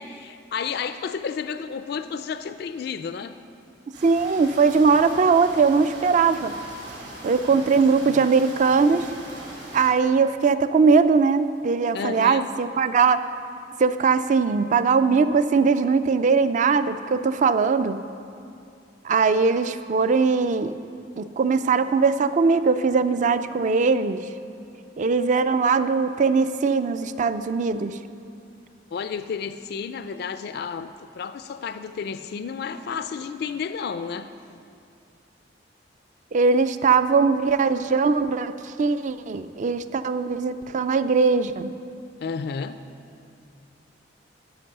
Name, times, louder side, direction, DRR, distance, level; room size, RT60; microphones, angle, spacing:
voice 1, 0.0-3.3 7.5-8.2 11.9-12.5 28.9-34.3 42.2-42.8, left 6 dB, 60° left, 11 dB, 0.3 m, -32 dB
sound 1, 3.9-9.9, right 1 dB, 70° right, 2.9 m, -41 dB
voice 2, 4.0-6.5 7.2-9.1 9.7-13.2 13.8-18.0 19.0-20.8 21.2-24.2 25.0-28.0 36.3-41.7, right 5 dB, 40° right, 12 dB, 0.4 m, -20 dB
13.0 x 5.3 x 6.6 m, 2.5 s
head